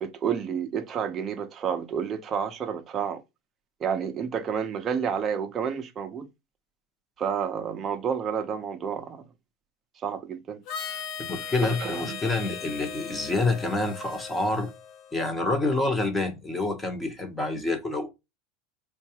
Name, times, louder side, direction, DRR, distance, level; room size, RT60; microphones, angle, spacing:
voice 1, 0.0-3.2 3.8-6.3 7.2-9.2 10.0-10.6 11.6-12.2, right 7 dB, 30° right, 0.5 m, -30 dB
Harmonica, 10.7-15.4, left 8 dB, 50° left, 0.6 m, -38 dB
voice 2, 11.3-14.7 15.1-18.1, left 2 dB, 10° left, 0.8 m, -27 dB
4.4 x 2.3 x 2.8 m
supercardioid pair, 140°, 0 cm